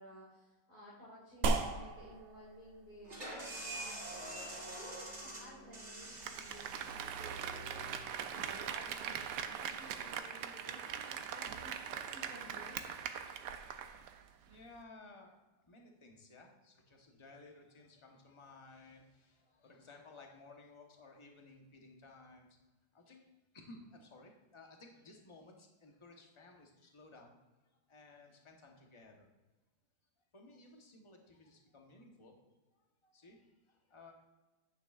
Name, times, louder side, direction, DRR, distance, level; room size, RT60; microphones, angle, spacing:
voice 1, 0.0-12.8, equal, 60° left, -9 dB, 3.1 m, -55 dB
sound 1, 1.4-10.2, right 3 dB, 60° right, 0.8 m, -42 dB
sound 2, 3.0-8.5, right 1 dB, 40° right, 2.2 m, -46 dB
Applause, 6.0-14.2 14.5-14.6, right 8 dB, 75° right, 1.2 m, -42 dB
voice 2, 13.4-14.1 14.4-22.5 22.9-27.3 27.9-29.3 30.3-34.1, left 2 dB, 20° left, 1 dB, 0.8 m, -58 dB
10.0 x 8.9 x 2.4 m, 1.1 s
omnidirectional pair, 1.9 m